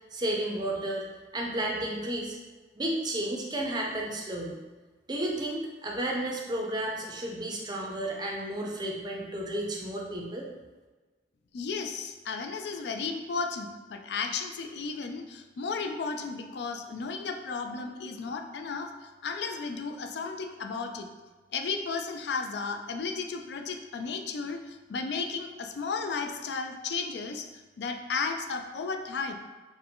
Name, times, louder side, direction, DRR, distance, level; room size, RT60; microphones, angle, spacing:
voice 1, 0.1-1.1 1.3-2.4 2.7-4.6 5.1-10.5, right 1 dB, 20° right, -1 dB, 0.5 m, -32 dB
voice 2, 11.5-21.1 21.5-27.5 27.8-29.4, left 4 dB, 60° left, 5 dB, 0.3 m, -34 dB
4.5 x 2.1 x 3.7 m, 1.3 s
head